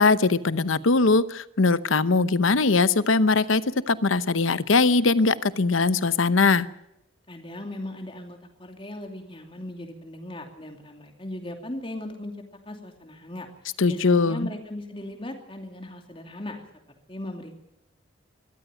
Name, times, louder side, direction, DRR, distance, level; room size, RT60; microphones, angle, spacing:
voice 1, 0.0-3.6 3.9-6.7 13.8-14.5, left 3 dB, 90° left, 15 dB, 0.9 m, -21 dB
voice 2, 7.3-12.4 12.7-16.6 17.1-17.6, left 1 dB, 25° left, 4 dB, 2.7 m, -38 dB
22.0 x 14.0 x 9.1 m, 0.85 s
head